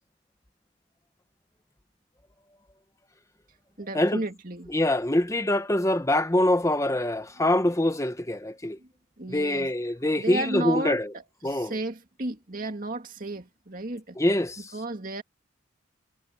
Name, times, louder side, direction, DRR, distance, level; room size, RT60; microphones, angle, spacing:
voice 1, 3.8-4.7 8.8-8.9 9.2-9.7 10.2-14.2 14.7-15.2, right 2 dB, 45° right, 2.4 m, -33 dB
voice 2, 4.7-8.8 9.3-11.1 11.4-11.7 14.2-14.6, left 1 dB, 15° left, 1.0 m, -24 dB
head